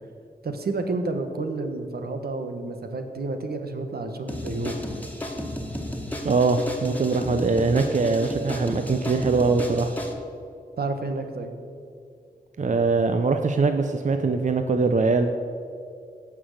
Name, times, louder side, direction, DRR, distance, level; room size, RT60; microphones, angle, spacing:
voice 1, 0.4-4.9 10.8-11.5, right 3 dB, 80° right, 6 dB, 1.3 m, -30 dB
sound 1, 4.3-10.1, left 1 dB, 10° left, 1.8 m, -33 dB
voice 2, 6.2-9.9 12.6-15.3, right 4 dB, 50° right, 7 dB, 0.7 m, -22 dB
16.5 x 6.1 x 7.9 m, 2.5 s
wide cardioid pair, 100°, 16 cm